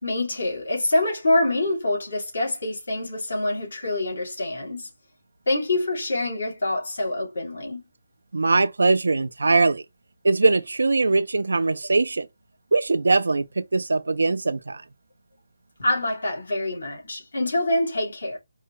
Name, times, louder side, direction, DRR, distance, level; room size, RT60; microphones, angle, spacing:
voice 1, 0.0-4.9 5.5-7.8 15.8-18.4, left 2 dB, 80° left, 2.5 m, -25 dB
voice 2, 8.3-9.8 10.2-12.3 12.7-14.8, right 3 dB, 85° right, 0.4 m, -21 dB
4.7 x 2.1 x 3.1 m
hypercardioid pair, 165°, 0 cm